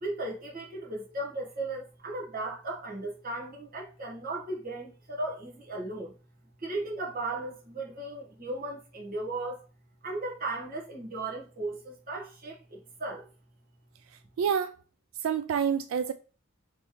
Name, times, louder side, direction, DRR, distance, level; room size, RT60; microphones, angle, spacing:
voice 1, 0.0-6.1 6.6-9.6 10.0-13.2, right 2 dB, 45° right, 1.4 m, -36 dB
voice 2, 14.4-14.7 15.2-16.1, right 7 dB, 90° right, 0.3 m, -27 dB
3.3 x 3.2 x 4.5 m
head